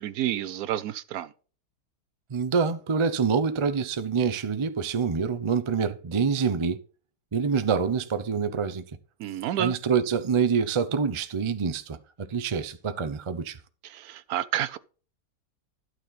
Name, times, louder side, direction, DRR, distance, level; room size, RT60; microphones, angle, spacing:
voice 1, 0.0-1.3 9.2-9.7 13.8-14.8, right 11 dB, 70° right, 1.0 m, -30 dB
voice 2, 2.3-6.8 7.3-8.8 9.6-13.6, right 6 dB, 40° right, 0.4 m, -26 dB
12.0 x 6.4 x 4.0 m
omnidirectional pair, 1.8 m